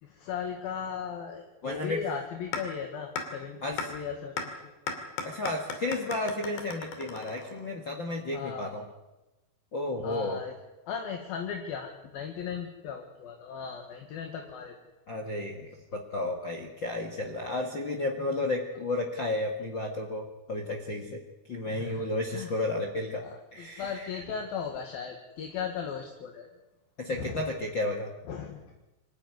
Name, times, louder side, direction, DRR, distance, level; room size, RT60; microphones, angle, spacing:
voice 1, 0.0-4.7 8.3-8.7 10.0-10.5 10.9-14.8 21.7-22.5 23.2-26.5 27.1-27.4 28.3-28.7, left 7 dB, 65° left, 3 dB, 3.5 m, -37 dB
voice 2, 1.6-2.0 3.6-3.8 5.2-8.8 9.7-10.4 15.1-21.2 21.5-23.3 23.5-24.1 27.0-28.1, left 2 dB, 40° left, 2 dB, 1.8 m, -32 dB
sound 1, 2.5-2.6 3.2-3.3 3.8-3.9 4.4-4.5 4.9-7.8, left 5 dB, 85° left, 4.7 m, -35 dB
25.5 x 15.0 x 9.6 m, 1.0 s
omnidirectional pair, 4.6 m